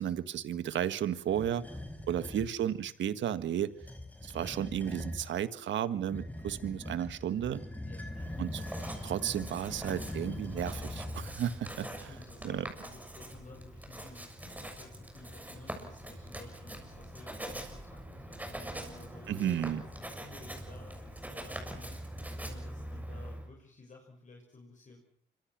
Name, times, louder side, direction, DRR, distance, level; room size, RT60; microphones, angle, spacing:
voice 1, 0.0-1.7 2.1-3.7 4.2-7.6 8.4-8.6 9.0-12.1 12.4-12.7 19.3-19.8, right 10 dB, 70° right, 12 dB, 1.6 m, -33 dB
sound 1, 1.2-2.5 3.7-5.3 6.1-11.6, left 1 dB, 10° left, 4.5 m, -42 dB
voice 2, 2.1-2.5 7.8-8.6 11.8-22.1 22.4-25.0, left 3 dB, 40° left, 1 dB, 6.3 m, -53 dB
Writing, 8.1-23.5, right 1 dB, 10° right, 7.0 m, -44 dB
25.5 x 24.5 x 6.2 m, 0.62 s
cardioid pair, 90°, 20 cm